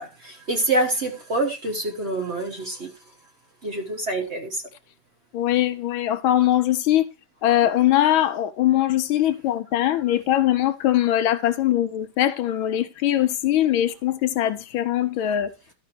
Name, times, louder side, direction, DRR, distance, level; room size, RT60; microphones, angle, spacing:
voice 1, 0.0-2.9 3.6-4.6, right 2 dB, 35° right, 1.3 m, -26 dB
voice 2, 5.3-7.1 7.4-15.5, left 12 dB, 75° left, 1.4 m, -21 dB
13.0 x 5.0 x 4.4 m
omnidirectional pair, 2.4 m